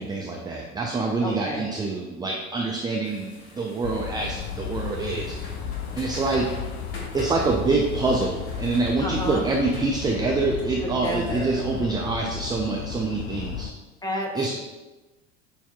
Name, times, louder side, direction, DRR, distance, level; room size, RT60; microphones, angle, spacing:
voice 1, 0.0-5.3 6.0-6.5 7.1-13.7 14.3-14.5, right 3 dB, 15° right, 0 dB, 0.4 m, -26 dB
voice 2, 1.2-1.7 9.0-9.5 10.8-11.6 14.0-14.5, equal, 10° left, -1 dB, 0.9 m, -30 dB
sound 1, 3.0-12.6, left 2 dB, 75° left, 1.2 m, -46 dB
sound 2, 3.8-13.7, left 7 dB, 50° left, 0.5 m, -34 dB
6.3 x 2.8 x 2.3 m, 1.1 s
hypercardioid pair, 70°, 32 cm